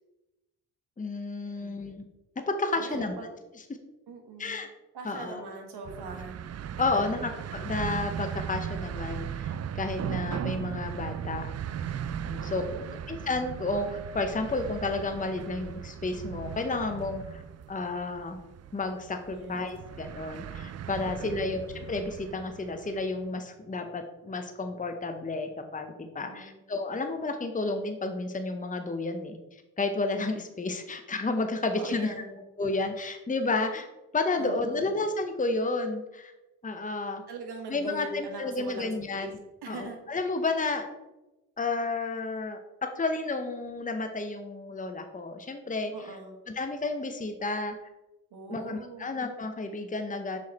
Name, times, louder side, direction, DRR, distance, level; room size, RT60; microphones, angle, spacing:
voice 1, 1.0-2.1 2.6-3.3 4.4-4.7 5.0-5.4 6.8-11.5 12.1-12.6 12.9-17.4 17.7-18.4 18.7-32.1 32.6-33.9 34.1-36.3 36.6-37.2 37.7-39.4 39.7-40.9 41.6-46.2 46.5-47.7 48.5-50.4, left 3 dB, 20° left, 6 dB, 0.9 m, -31 dB
voice 2, 2.7-3.3 4.1-4.6 4.9-6.4 6.9-7.3 12.3-13.0 19.3-19.7 21.0-21.6 26.2-26.6 31.6-32.4 34.4-34.9 37.3-39.3 39.6-40.0 45.9-46.4 48.3-49.2, right 3 dB, 75° right, 3 dB, 1.6 m, -41 dB
sound 1, 5.8-23.1, right 9 dB, 40° right, 0.4 m, -37 dB
6.2 x 4.7 x 4.2 m, 1.0 s
supercardioid pair, 55°, 40 cm